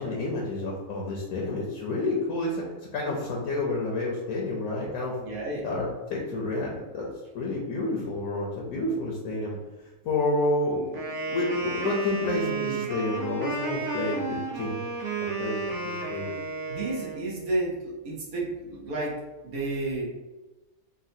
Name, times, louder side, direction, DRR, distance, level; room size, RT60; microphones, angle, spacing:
voice 1, 0.0-5.2 5.6-7.1 7.3-9.6 10.0-14.8 15.4-16.4, left 2 dB, 75° left, -2 dB, 1.0 m, -29 dB
voice 2, 5.2-5.6 16.7-19.1 19.4-20.1, right 2 dB, 75° right, -5 dB, 1.4 m, -31 dB
Wind instrument woodwind instrument, 10.9-17.2, right 3 dB, 60° right, 1.1 m, -32 dB
4.0 x 2.2 x 2.6 m, 1.1 s
omnidirectional pair, 1.5 m